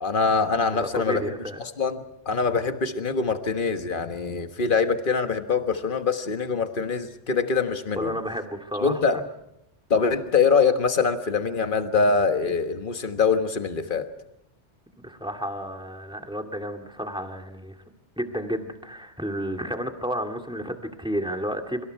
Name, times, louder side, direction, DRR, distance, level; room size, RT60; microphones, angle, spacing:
voice 1, 0.0-1.2 1.8-8.2 8.8-9.2 9.9-14.1, left 5 dB, 45° left, 7 dB, 1.6 m, -24 dB
voice 2, 0.7-1.6 8.0-9.2 15.0-17.8 18.2-21.8, equal, 5° right, 4 dB, 2.1 m, -31 dB
25.5 x 25.5 x 4.7 m, 0.80 s
omnidirectional pair, 1.2 m